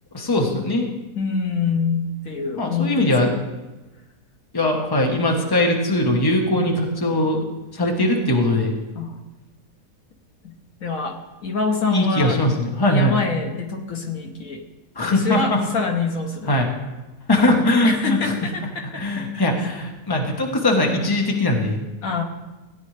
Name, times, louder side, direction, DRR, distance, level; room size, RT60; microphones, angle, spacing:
voice 1, 0.1-0.8 2.6-3.3 4.5-7.4 7.7-8.7 11.9-13.2 14.9-15.6 16.5-16.7 17.3-18.3 19.0-21.8, left 1 dB, 15° left, 1 dB, 1.2 m, -20 dB
voice 2, 1.1-3.4 8.9-9.2 10.4-10.5 10.8-11.1 11.4-12.4 12.9-14.6 15.0-16.5 17.8-19.0 19.3-19.5 22.0-22.2, left 4 dB, 65° left, 3 dB, 1.3 m, -25 dB
16.5 x 9.5 x 3.3 m, 1.1 s
omnidirectional pair, 1.6 m